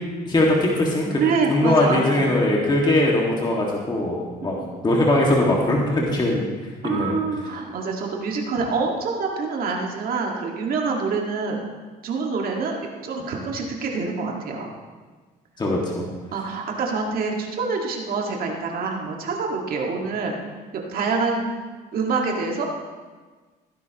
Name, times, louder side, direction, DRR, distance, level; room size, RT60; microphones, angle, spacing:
voice 1, 0.3-1.2 1.5-4.2 4.4-4.6 4.8-6.4 6.8-7.2 15.6-16.0, left 1 dB, 25° left, -3 dB, 2.0 m, -20 dB
voice 2, 1.1-2.3 4.4-4.7 6.8-11.6 12.0-14.7 16.3-20.3 20.7-21.4 21.9-22.6, right 4 dB, 60° right, 0 dB, 1.9 m, -26 dB
16.5 x 10.0 x 3.0 m, 1.4 s
cardioid pair, 110°, 17 cm